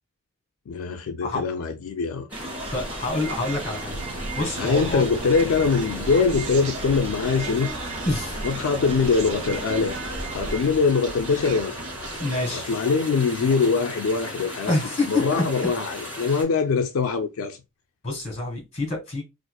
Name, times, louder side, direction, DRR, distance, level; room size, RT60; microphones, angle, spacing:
voice 1, 0.7-2.3 4.6-7.7 8.4-10.0 10.3-11.7 12.5-17.6, left 5 dB, 75° left, 0.4 m, -23 dB
sound 1, 2.3-16.4, left 1 dB, 10° right, 2.0 m, -37 dB
sound 2, 2.3-10.7, right 3 dB, 25° right, 0.3 m, -36 dB
voice 2, 2.7-3.9 4.3-5.0 8.0-8.4 12.2-12.6 14.7-15.4 18.0-19.2, left 2 dB, 30° left, 1.8 m, -27 dB
Human voice, 3.4-12.9, right 3 dB, 85° right, 0.7 m, -38 dB
4.3 x 2.5 x 2.2 m
head